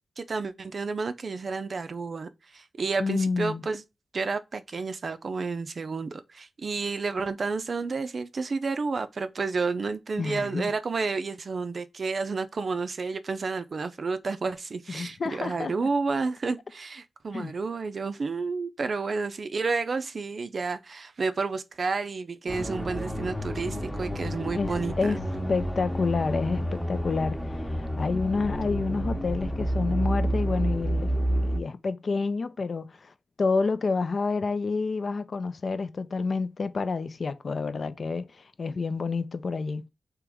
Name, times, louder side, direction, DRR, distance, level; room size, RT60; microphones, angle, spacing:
voice 1, 0.2-3.8 4.1-25.2, right 4 dB, 55° right, 0.4 m, -31 dB
voice 2, 3.0-3.6 10.2-10.7 14.9-15.7 17.3-17.5 24.5-25.2 25.5-33.1 33.4-39.8, left 4 dB, 55° left, 0.5 m, -29 dB
sound 1, 22.5-31.6, equal, 10° left, 0.8 m, -30 dB
3.5 x 3.0 x 4.7 m
wide cardioid pair, 115°, 0 cm